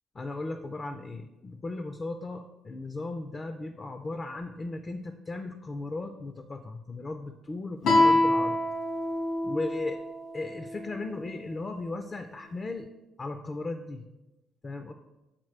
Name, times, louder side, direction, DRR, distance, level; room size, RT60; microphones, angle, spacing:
voice 1, 0.1-8.6 9.4-10.0 10.3-12.9 13.2-14.0 14.6-14.9, left 2 dB, 35° left, 7 dB, 0.4 m, -36 dB
Guitar, 7.8-11.1, left 2 dB, 85° left, 1.6 m, -26 dB
7.3 x 4.2 x 3.3 m, 1.0 s
cardioid pair, 90°, 0 cm